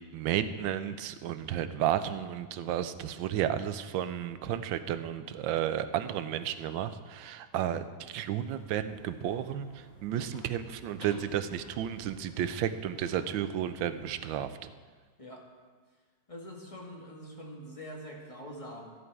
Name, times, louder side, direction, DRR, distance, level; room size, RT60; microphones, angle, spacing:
voice 1, 0.1-9.7 10.0-14.7, right 10 dB, 85° right, 11 dB, 1.4 m, -32 dB
sound 1, 8.3-14.4, left 1 dB, 75° left, 2.9 m, -53 dB
voice 2, 15.2-15.5 16.3-18.9, equal, 20° left, -1 dB, 1.6 m, -44 dB
14.0 x 10.0 x 4.7 m, 1.5 s
omnidirectional pair, 2.0 m